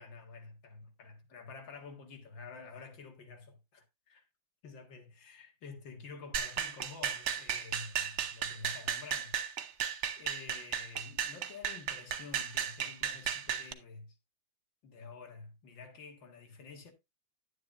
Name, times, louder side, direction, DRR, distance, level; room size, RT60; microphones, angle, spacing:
voice 1, 0.0-4.3 4.6-14.2 14.8-16.9, left 4 dB, 70° left, 2.5 m, -49 dB
sound 1, 6.3-13.7, right 8 dB, 60° right, 0.7 m, -35 dB
10.5 x 9.3 x 2.6 m
omnidirectional pair, 2.2 m